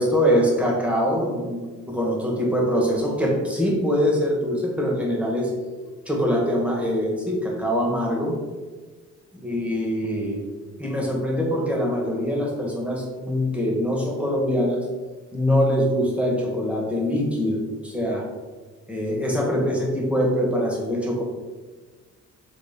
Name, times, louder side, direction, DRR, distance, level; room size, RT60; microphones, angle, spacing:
voice 1, 0.0-5.5 6.1-8.4 9.3-10.4 10.8-14.8 15.3-18.2 18.9-21.2, equal, 5° right, -2 dB, 1.2 m, -23 dB
3.9 x 3.3 x 3.5 m, 1.4 s
cardioid pair, 105°, 29 cm